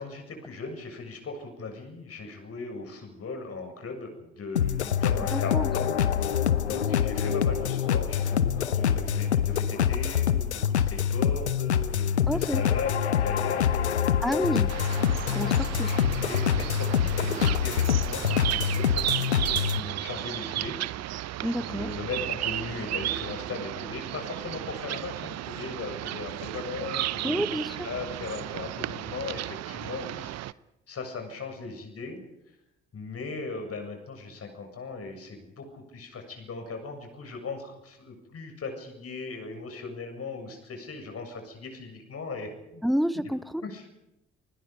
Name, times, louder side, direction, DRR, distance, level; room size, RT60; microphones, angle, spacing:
voice 1, 0.0-14.2 15.3-21.2 21.6-27.6 27.8-30.5 30.9-32.2 32.9-42.8 43.6-44.0, left 4 dB, 45° left, 5 dB, 7.4 m, -38 dB
sound 1, 4.6-19.8, left 8 dB, 90° left, 0.8 m, -25 dB
voice 2, 5.3-5.7 12.3-12.6 14.2-14.7 15.3-15.9 21.4-21.9 27.2-27.9 42.8-43.6, equal, ahead, 14 dB, 1.2 m, -29 dB
sound 2, 14.7-30.5, right 14 dB, 55° right, 0.8 m, -34 dB
30.0 x 20.5 x 5.3 m, 0.90 s
figure-of-eight pair, 45°, 32 cm